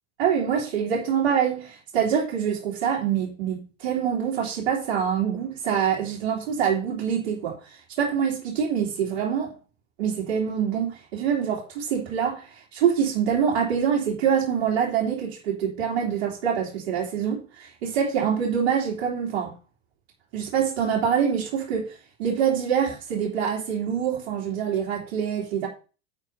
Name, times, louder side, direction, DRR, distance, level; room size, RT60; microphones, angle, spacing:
voice 1, 0.2-9.5 10.0-19.5 20.3-25.7, right 8 dB, 80° right, 3.0 m, -25 dB
8.1 x 4.8 x 5.5 m
supercardioid pair, 100°, 38 cm